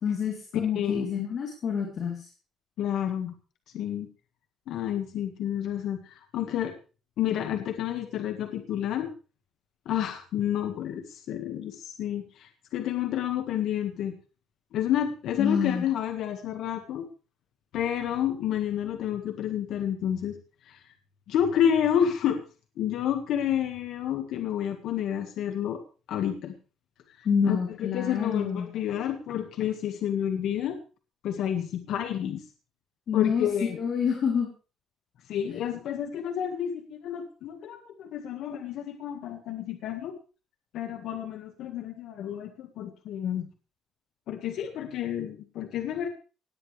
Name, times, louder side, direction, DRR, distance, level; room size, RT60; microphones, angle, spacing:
voice 1, 0.0-2.3 15.4-15.8 27.2-28.7 33.1-34.5 35.5-35.6, left 7 dB, 40° left, 1 dB, 3.6 m, -27 dB
voice 2, 0.7-1.1 2.8-3.3 3.7-4.1 4.7-6.7 7.2-9.1 9.8-14.2 14.7-17.1 17.7-20.4 20.7-20.8 21.3-22.4 22.8-25.8 26.1-26.5 27.4-30.8 31.2-32.4 33.1-33.8 35.3-40.1 40.7-43.5 44.3-46.1, left 10 dB, 60° left, 5 dB, 1.8 m, -30 dB
18.5 x 17.0 x 3.4 m, 0.36 s
cardioid pair, 180°, 0 cm